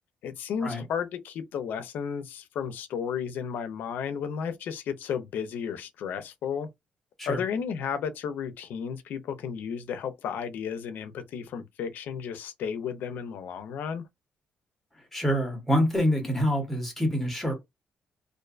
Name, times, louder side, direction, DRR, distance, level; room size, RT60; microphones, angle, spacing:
voice 1, 0.2-6.7 7.3-14.0, left 7 dB, 75° left, 0.4 m, -33 dB
voice 2, 15.1-17.5, equal, 5° left, 0.8 m, -26 dB
2.4 x 2.2 x 2.3 m
cardioid pair, 155°, 3 cm